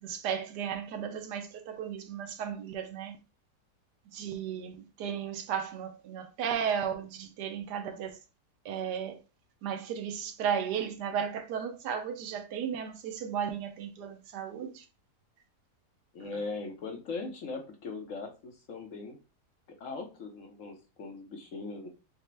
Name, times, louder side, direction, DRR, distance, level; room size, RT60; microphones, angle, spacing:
voice 1, 0.0-3.2 4.1-8.2 8.6-9.2 9.6-14.8, right 8 dB, 85° right, 1.3 m, -34 dB
voice 2, 16.1-19.2 19.8-21.9, left 3 dB, 60° left, 1.1 m, -39 dB
5.8 x 2.1 x 3.2 m
omnidirectional pair, 1.7 m